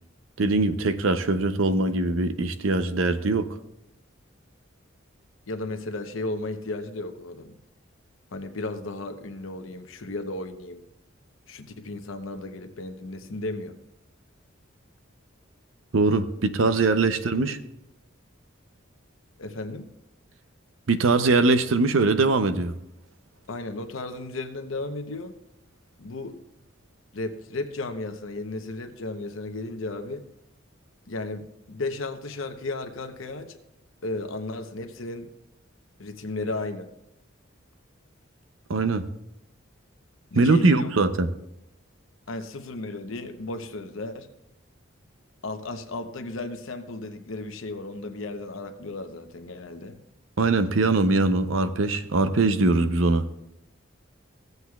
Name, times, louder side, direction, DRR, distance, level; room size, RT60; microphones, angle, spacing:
voice 1, 0.4-3.5 15.9-17.6 20.9-22.7 38.7-39.1 40.3-41.3 50.4-53.2, right 3 dB, 80° right, 11 dB, 0.6 m, -22 dB
voice 2, 5.5-7.6 8.3-10.8 11.5-13.8 17.3-17.5 19.4-19.9 23.5-25.3 26.0-26.4 27.1-30.3 31.1-33.6 34.0-35.3 36.0-36.9 40.3-40.9 42.3-44.3 45.4-50.0, left 2 dB, 80° left, 7 dB, 0.9 m, -34 dB
16.0 x 8.0 x 2.3 m, 0.84 s
head